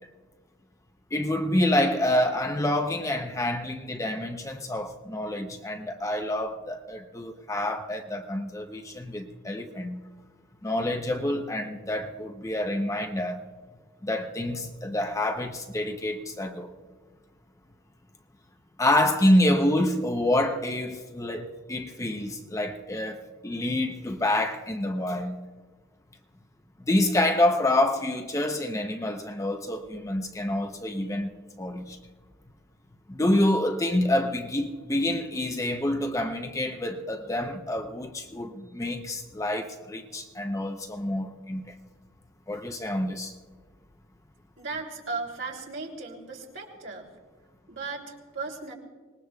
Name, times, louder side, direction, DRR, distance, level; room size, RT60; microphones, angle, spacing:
voice 1, 1.1-10.0 10.6-13.4 14.0-16.7 18.8-25.4 26.8-31.3 31.6-32.0 33.1-41.7 42.5-43.3, left 1 dB, 15° left, 0.7 m, -27 dB
voice 2, 44.6-47.1 47.7-48.7, right 3 dB, 65° right, 2.8 m, -36 dB
25.5 x 19.5 x 2.3 m
head